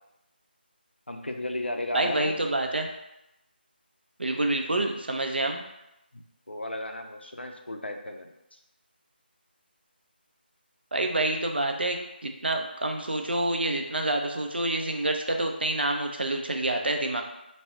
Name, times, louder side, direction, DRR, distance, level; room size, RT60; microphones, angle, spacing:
voice 1, 1.1-2.3 6.1-8.6, left 1 dB, 90° left, 3 dB, 0.4 m, -35 dB
voice 2, 1.9-2.9 4.2-5.6 10.9-17.2, right 2 dB, 70° right, 3 dB, 0.4 m, -27 dB
2.3 x 2.0 x 3.5 m, 0.90 s
figure-of-eight pair, 160°, 6 cm